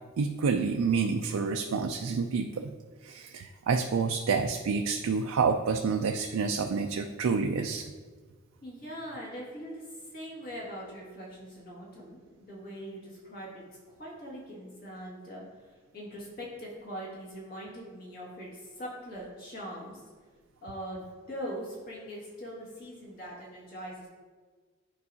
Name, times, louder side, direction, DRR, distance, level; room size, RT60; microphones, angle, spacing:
voice 1, 0.2-2.7 3.0-7.8, right 5 dB, 85° right, 5 dB, 0.4 m, -28 dB
voice 2, 8.6-20.1 20.6-24.1, equal, 45° left, -5 dB, 1.9 m, -42 dB
9.7 x 4.6 x 2.8 m, 1.5 s
head